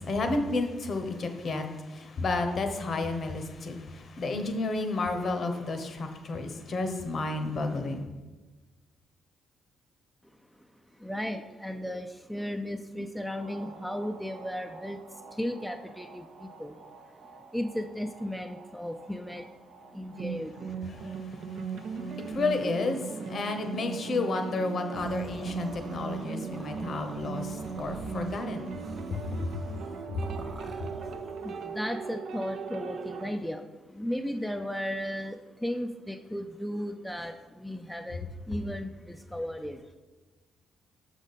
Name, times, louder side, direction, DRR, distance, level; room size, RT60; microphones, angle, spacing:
voice 1, 0.0-8.1 20.8-29.8 30.1-30.3, left 3 dB, 50° left, 7 dB, 0.8 m, -32 dB
voice 2, 10.5-17.3 17.5-21.0 30.5-39.9, equal, ahead, 5 dB, 0.4 m, -36 dB
sound 1, 13.3-33.3, right 5 dB, 70° right, 0.5 m, -39 dB
sound 2, 24.9-31.3, right 2 dB, 45° right, 0.9 m, -45 dB
6.2 x 5.1 x 4.1 m, 1.2 s
cardioid pair, 90°, 0 cm